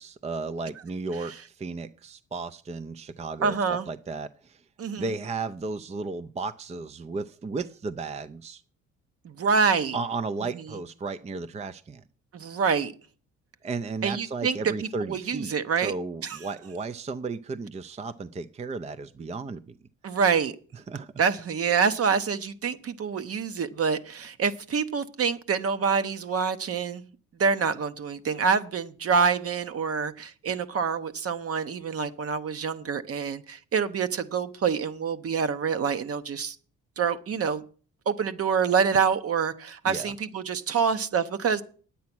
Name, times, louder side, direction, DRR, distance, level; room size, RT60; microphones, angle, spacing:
voice 1, 0.0-4.6 5.0-8.6 9.9-12.0 13.6-19.8 20.9-21.1 39.9-40.1 40.7-40.9, right 4 dB, 20° right, 0.5 m, -34 dB
voice 2, 3.4-3.9 4.8-5.2 9.2-10.0 10.5-10.8 12.3-12.9 14.0-15.9 16.2-16.4 20.0-20.5 21.2-27.0 27.4-36.6 37.0-37.6 38.1-41.6, right 6 dB, 50° right, 1.0 m, -26 dB
9.6 x 8.5 x 6.1 m
cardioid pair, 90°, 30 cm